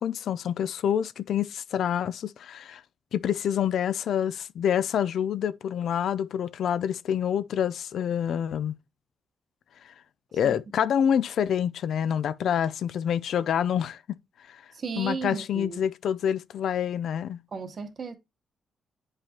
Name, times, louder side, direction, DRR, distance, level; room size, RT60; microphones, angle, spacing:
voice 1, 0.0-2.8 3.1-8.7 10.3-14.2 14.5-14.6 15.0-17.4, left 9 dB, 75° left, 0.4 m, -27 dB
voice 2, 14.7-15.8 17.5-18.1, right 5 dB, 45° right, 1.0 m, -34 dB
9.0 x 4.8 x 2.8 m
cardioid pair, 115°, 0 cm